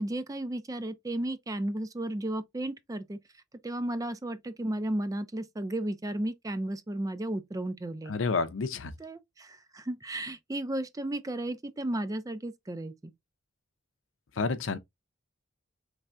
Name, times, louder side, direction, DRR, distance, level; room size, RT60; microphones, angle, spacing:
voice 1, 0.0-3.2 3.6-8.1 9.0-13.1, right 1 dB, 20° right, 0.4 m, -34 dB
voice 2, 8.1-8.9 14.4-14.8, left 4 dB, 80° left, 0.6 m, -29 dB
4.4 x 3.3 x 2.5 m
head